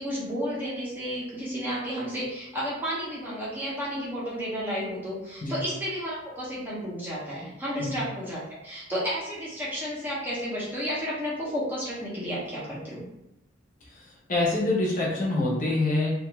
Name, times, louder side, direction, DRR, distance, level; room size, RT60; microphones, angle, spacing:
voice 1, 0.0-13.0, equal, 10° right, -7 dB, 0.6 m, -32 dB
voice 2, 14.3-16.1, left 2 dB, 40° left, -5 dB, 0.7 m, -25 dB
2.4 x 2.3 x 3.0 m, 0.86 s
head